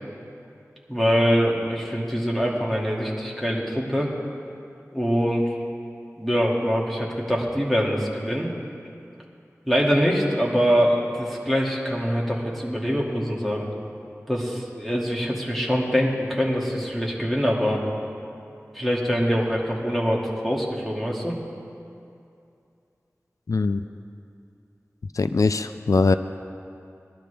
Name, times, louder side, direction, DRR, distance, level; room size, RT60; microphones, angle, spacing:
voice 1, 0.9-4.1 4.9-5.6 6.2-8.5 9.7-13.7 14.3-17.8 18.7-21.3, equal, ahead, -4 dB, 2.2 m, -24 dB
voice 2, 23.5-23.8 25.1-26.1, left 3 dB, 85° left, 10 dB, 0.3 m, -21 dB
19.5 x 12.0 x 3.4 m, 2.6 s
wide cardioid pair, 55°, 6 cm